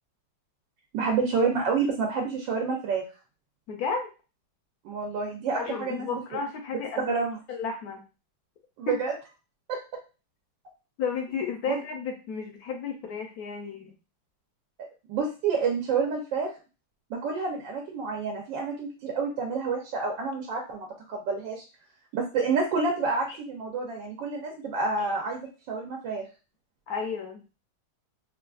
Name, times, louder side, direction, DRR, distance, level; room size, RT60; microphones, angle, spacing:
voice 1, 0.9-3.0 4.8-6.2 7.0-7.4 8.8-9.1 9.7-9.8 11.7-11.8 14.8-16.5 17.1-21.6 22.1-26.2, right 4 dB, 75° right, 0 dB, 1.3 m, -29 dB
voice 2, 3.7-4.1 5.6-7.1 7.5-8.0 8.9-9.0 11.0-13.9 26.9-27.4, left 5 dB, 70° left, 3 dB, 0.9 m, -32 dB
3.9 x 2.4 x 2.3 m, 0.32 s
omnidirectional pair, 2.0 m